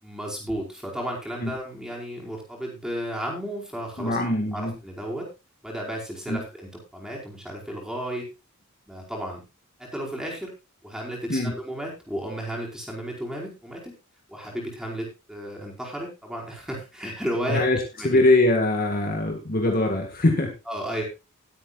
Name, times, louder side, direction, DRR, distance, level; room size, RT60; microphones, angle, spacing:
voice 1, 0.0-5.3 5.6-8.3 8.9-9.4 9.8-10.5 10.8-13.9 14.3-17.6 18.0-18.2 20.7-21.0, equal, 5° right, -2 dB, 4.9 m, -33 dB
voice 2, 4.0-4.7 6.3-6.4 11.3-11.5 17.5-20.5, left 2 dB, 40° left, 3 dB, 1.9 m, -22 dB
20.5 x 8.8 x 2.5 m, 0.27 s
head